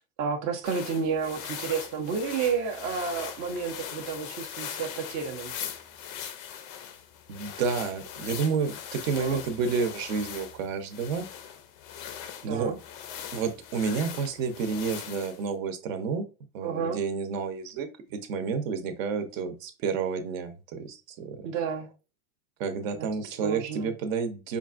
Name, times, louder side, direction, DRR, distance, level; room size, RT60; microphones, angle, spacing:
voice 1, 0.2-5.5 9.2-9.4 12.4-12.8 16.6-17.0 21.4-21.9 23.0-23.9, right 6 dB, 30° right, 2 dB, 0.5 m, -31 dB
sound 1, 0.6-15.5, left 9 dB, 35° left, 0.5 m, -40 dB
voice 2, 7.3-11.2 12.4-12.8 13.3-16.3 16.5-21.5 22.6-24.6, right 5 dB, 60° right, 8 dB, 0.8 m, -30 dB
5.2 x 2.5 x 2.4 m, 0.32 s
supercardioid pair, 130°, 46 cm